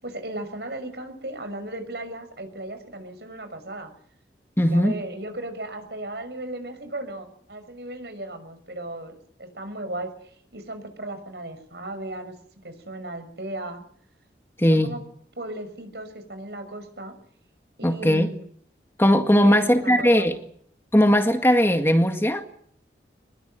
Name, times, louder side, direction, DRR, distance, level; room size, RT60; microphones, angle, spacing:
voice 1, 0.0-3.9 4.7-12.4 12.6-13.8 14.7-15.0 15.4-17.1 17.8-18.4 19.4-20.3, right 1 dB, 70° right, 6.0 m, -36 dB
voice 2, 4.6-4.9 14.6-15.0 17.8-18.3 19.0-20.4 20.9-22.4, equal, 15° left, 1.9 m, -19 dB
25.5 x 21.0 x 7.7 m
head